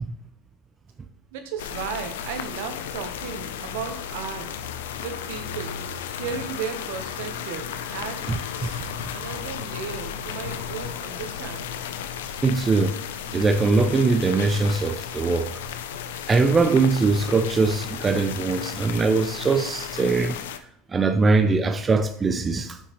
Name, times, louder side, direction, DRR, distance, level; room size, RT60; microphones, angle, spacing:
voice 1, 1.3-4.5 5.0-5.8 6.2-8.3 8.6-8.8 9.1-11.8, right 7 dB, 75° right, 1.0 m, -35 dB
sound 1, 1.6-20.6, left 8 dB, 90° left, 0.5 m, -34 dB
voice 2, 8.3-8.9 12.4-13.0 13.3-15.5 16.3-20.4 20.9-22.8, right 3 dB, 20° right, 0.4 m, -22 dB
6.6 x 5.7 x 3.1 m
supercardioid pair, 125°, 0 cm